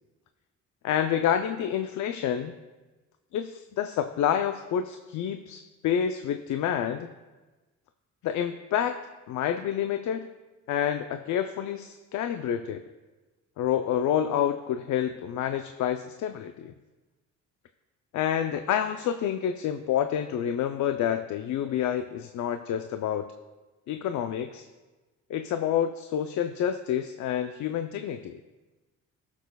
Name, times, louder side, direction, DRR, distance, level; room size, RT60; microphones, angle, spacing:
voice 1, 0.8-2.5 3.3-7.1 8.2-9.0 9.3-10.3 10.7-12.8 13.6-16.7 18.1-23.3 23.9-24.6 25.3-28.4, left 9 dB, 75° left, 8 dB, 0.5 m, -28 dB
20.5 x 7.2 x 2.3 m, 1.2 s
cardioid pair, 90°, 30 cm